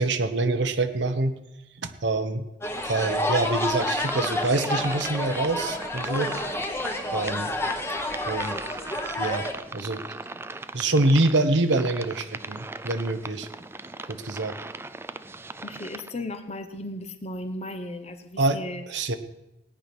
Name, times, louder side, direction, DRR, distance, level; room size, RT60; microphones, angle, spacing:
voice 1, 0.0-1.4 1.8-2.5 2.8-6.3 7.1-7.5 8.3-8.6 9.2-10.0 10.7-13.5 14.1-14.6 18.4-18.6 18.9-19.2, right 2 dB, 70° right, 7 dB, 1.1 m, -25 dB
sound 1, 2.6-9.5, left 1 dB, 15° left, 1.4 m, -29 dB
sound 2, 3.8-16.1, right 3 dB, 15° right, 0.5 m, -39 dB
voice 2, 15.6-18.8, left 1 dB, 35° left, 7 dB, 1.2 m, -35 dB
17.5 x 10.0 x 6.1 m, 0.93 s
head